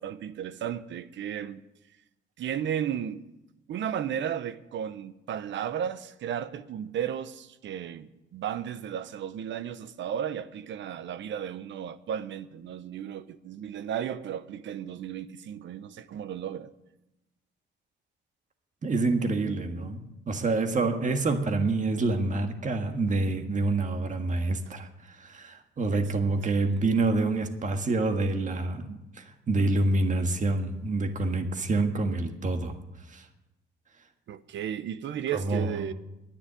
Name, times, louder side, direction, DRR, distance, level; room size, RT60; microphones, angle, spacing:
voice 1, 0.0-1.6 2.4-3.2 3.7-16.7 34.3-35.9, right 9 dB, 70° right, 0.8 m, -34 dB
voice 2, 18.8-32.7 33.1-33.3 35.3-35.9, right 3 dB, 40° right, 1.7 m, -27 dB
10.5 x 9.7 x 9.4 m
cardioid pair, 90°, 20 cm